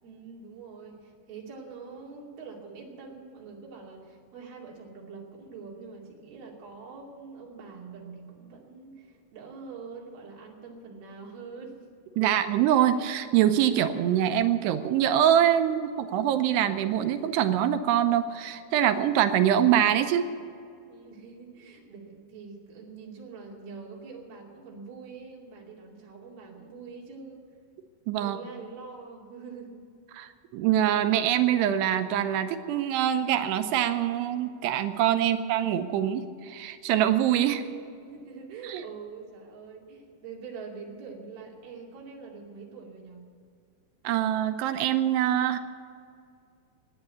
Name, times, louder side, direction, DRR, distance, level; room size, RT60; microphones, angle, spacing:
voice 1, 0.0-11.9 12.2-12.5 20.8-27.4 28.2-29.8 35.2-35.4 37.4-43.2, right 5 dB, 65° right, -2 dB, 4.4 m, -44 dB
voice 2, 12.2-20.3 28.1-28.4 30.1-37.6 38.6-38.8 44.0-45.6, right 10 dB, 90° right, 9 dB, 2.8 m, -24 dB
16.5 x 9.8 x 8.3 m, 2.3 s
omnidirectional pair, 4.8 m